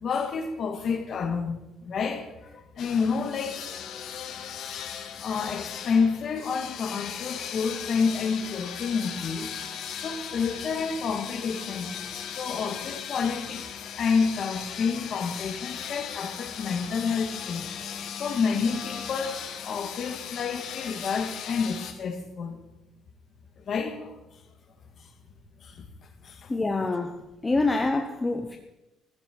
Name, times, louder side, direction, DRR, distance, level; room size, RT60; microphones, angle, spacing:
voice 1, 0.0-3.9 4.2-11.9 12.3-17.7 18.2-22.6 23.6-24.4 25.6-25.8 26.2-26.5, left 5 dB, 40° left, 2.0 m, -29 dB
sound 1, 2.8-21.9, left 8 dB, 60° left, 1.5 m, -38 dB
voice 2, 26.5-28.6, left 3 dB, 15° left, 0.8 m, -26 dB
15.5 x 15.0 x 4.6 m
cardioid pair, 175°, 0 cm